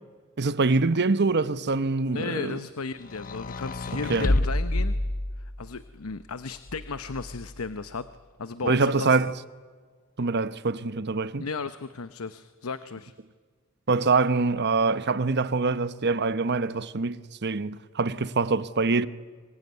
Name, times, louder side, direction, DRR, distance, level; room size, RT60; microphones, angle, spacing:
voice 1, 0.4-2.6 4.1-4.3 8.6-9.3 10.2-11.5 13.9-19.1, right 3 dB, 55° right, 1.0 m, -24 dB
voice 2, 2.1-5.0 5.4-8.1 8.4-9.2 11.4-13.1, left 4 dB, 85° left, 0.9 m, -34 dB
sound 1, 3.0-5.8 6.7-7.6, left 1 dB, 40° left, 1.0 m, -29 dB
26.5 x 21.5 x 9.5 m
head